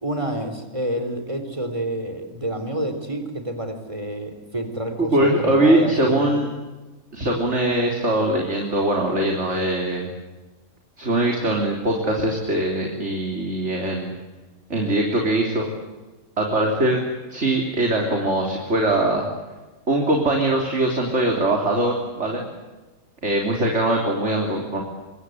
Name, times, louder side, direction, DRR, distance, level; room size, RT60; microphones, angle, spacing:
voice 1, 0.0-6.4, right 1 dB, 20° right, 7 dB, 4.0 m, -28 dB
voice 2, 5.0-6.5 7.1-10.1 11.0-14.1 14.7-15.7 16.4-17.0 17.3-19.2 19.9-22.4 23.2-24.8, right 1 dB, 55° right, 1 dB, 4.0 m, -21 dB
26.5 x 25.0 x 8.2 m, 1.2 s
omnidirectional pair, 1.5 m